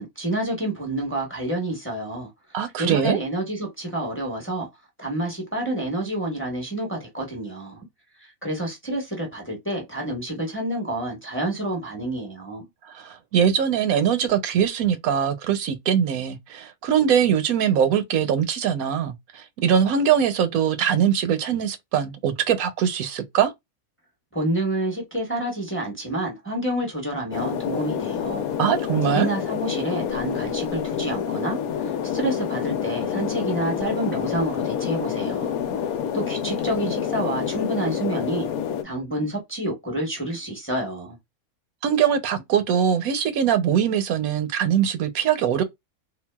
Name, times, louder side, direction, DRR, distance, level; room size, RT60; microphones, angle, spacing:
voice 1, 0.0-2.3 2.8-4.7 5.0-7.8 8.2-12.6 24.3-28.5 29.1-35.5 36.1-38.5 38.8-41.2, right 1 dB, 10° left, 1.0 m, -28 dB
voice 2, 2.5-3.2 12.9-23.5 28.6-29.3 41.8-45.6, right 8 dB, 80° right, 1.0 m, -22 dB
sound 1, 27.3-38.8, left 8 dB, 85° left, 1.1 m, -28 dB
3.8 x 2.3 x 2.2 m
omnidirectional pair, 1.5 m